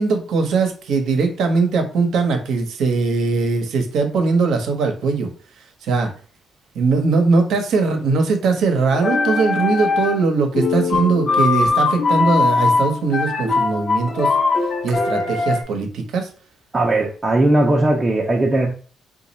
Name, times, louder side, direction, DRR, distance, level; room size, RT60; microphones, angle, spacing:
voice 1, 0.0-5.3 5.8-6.1 6.7-14.3 14.8-16.3, right 4 dB, 75° right, 5 dB, 0.8 m, -20 dB
sound 1, 8.9-10.3 10.5-15.6, left 4 dB, 55° left, 0.6 m, -20 dB
voice 2, 16.7-18.7, right 2 dB, 25° right, -3 dB, 0.7 m, -18 dB
2.9 x 2.3 x 4.1 m, 0.42 s
cardioid pair, 85°, 0 cm